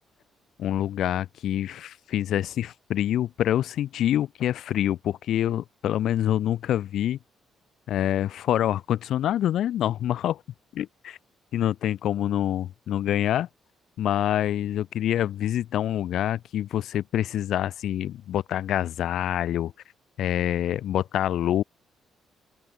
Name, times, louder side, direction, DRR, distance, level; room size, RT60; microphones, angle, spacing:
voice 1, 0.6-7.2 7.9-10.4 10.7-11.2 11.5-13.5 14.0-19.7 20.2-21.6, left 11 dB, 75° left, 3.2 m, -26 dB
open air
cardioid pair, 90°, 0 cm